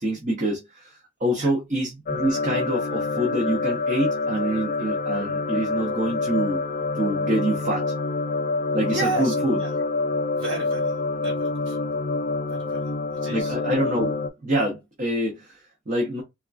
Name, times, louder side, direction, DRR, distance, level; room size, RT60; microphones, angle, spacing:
voice 1, 0.0-6.6 6.9-7.9 8.7-9.6 13.3-14.2 14.4-16.2, right 1 dB, 40° right, 0.7 m, -26 dB
sound 1, 2.1-14.3, left 3 dB, 45° left, 0.3 m, -27 dB
voice 2, 8.9-9.7 10.4-11.0 11.2-11.8 12.5-13.5, right 3 dB, 90° right, 0.8 m, -33 dB
3.5 x 2.3 x 2.4 m
head